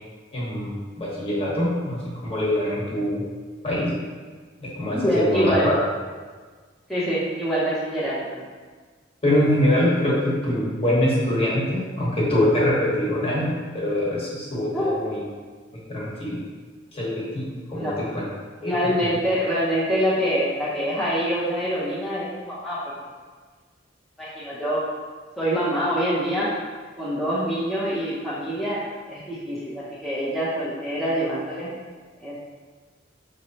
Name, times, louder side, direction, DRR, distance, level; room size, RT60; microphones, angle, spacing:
voice 1, 0.3-3.2 3.6-3.9 4.6-5.7 9.2-15.2 15.7-16.4 16.9-18.2 18.6-18.7, left 1 dB, 30° left, -6 dB, 1.2 m, -24 dB
voice 2, 4.9-5.7 6.9-8.4 14.7-15.0 17.7-17.9 18.6-22.8 24.2-24.8 25.4-26.5 27.0-28.8 29.1-31.7 32.2-32.4, equal, ahead, -11 dB, 0.6 m, -25 dB
5.1 x 3.0 x 2.8 m, 1.5 s
head